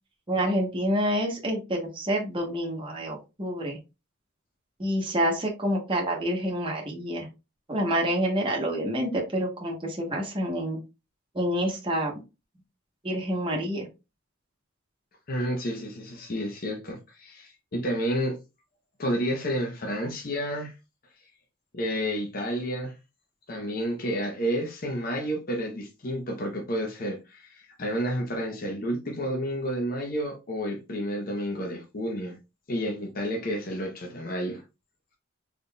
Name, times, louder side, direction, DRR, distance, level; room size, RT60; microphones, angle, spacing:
voice 1, 0.3-3.8 4.8-7.3 7.7-10.8 11.3-12.1 13.0-13.9, equal, 25° right, 1.0 m, -27 dB
voice 2, 15.3-18.4 19.0-20.7 21.7-22.9 23.5-32.4 32.7-34.6, equal, 45° left, 0.7 m, -30 dB
3.9 x 3.6 x 2.2 m
head